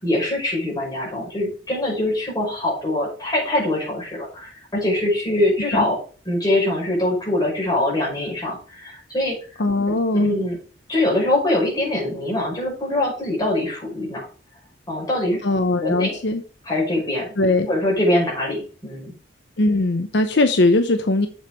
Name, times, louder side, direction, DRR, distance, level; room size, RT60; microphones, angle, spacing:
voice 1, 0.0-6.0 6.3-9.4 9.9-10.6 10.9-14.3 14.9-15.4 15.8-16.2 16.6-17.3 17.7-19.1, left 1 dB, 20° left, -4 dB, 5.4 m, -23 dB
voice 2, 9.6-10.3 15.4-16.4 17.4-17.7 19.6-21.3, left 2 dB, 65° left, 7 dB, 0.8 m, -20 dB
7.2 x 7.2 x 4.5 m, 0.40 s
head